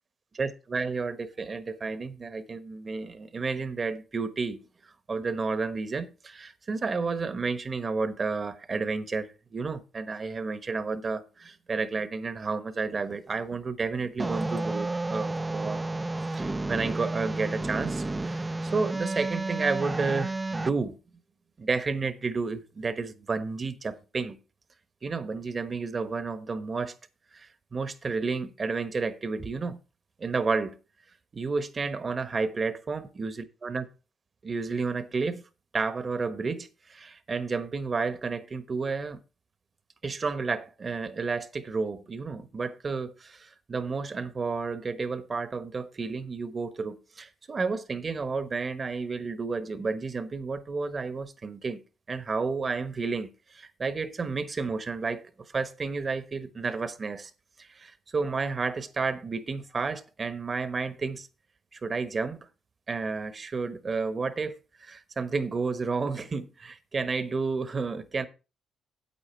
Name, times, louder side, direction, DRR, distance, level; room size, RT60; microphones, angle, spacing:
voice 1, 0.4-15.9 16.3-21.0 21.6-24.4 25.0-27.0 27.3-29.8 30.2-30.7 31.3-33.4 33.6-33.9 34.4-35.4 35.7-39.2 40.0-51.8 52.1-57.3 57.6-61.3 61.7-62.5 62.9-68.3, right 4 dB, 35° right, 1.2 m, -31 dB
sound 1, 14.2-20.7, right 2 dB, 20° right, 0.5 m, -31 dB
8.7 x 8.3 x 4.4 m
cardioid pair, 90°, 0 cm